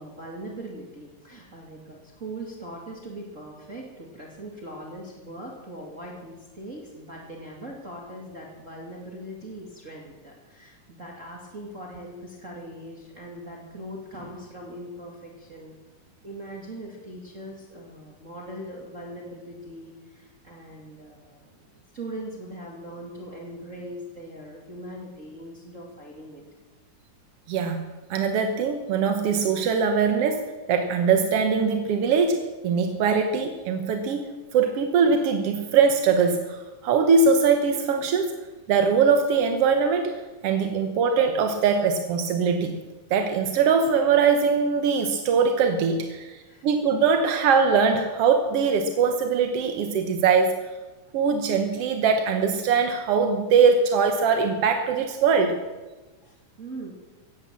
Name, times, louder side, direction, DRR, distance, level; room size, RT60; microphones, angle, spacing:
voice 1, 0.0-15.7 16.2-26.4 46.4-46.7 56.2-56.9, right 1 dB, 25° right, -1 dB, 2.1 m, -40 dB
voice 2, 27.5-27.8 28.1-30.4 30.7-38.3 38.7-40.1 40.4-42.8 43.1-50.6 51.1-55.6, right 5 dB, 65° right, 5 dB, 1.5 m, -22 dB
16.0 x 11.0 x 7.5 m, 1.2 s
omnidirectional pair, 4.0 m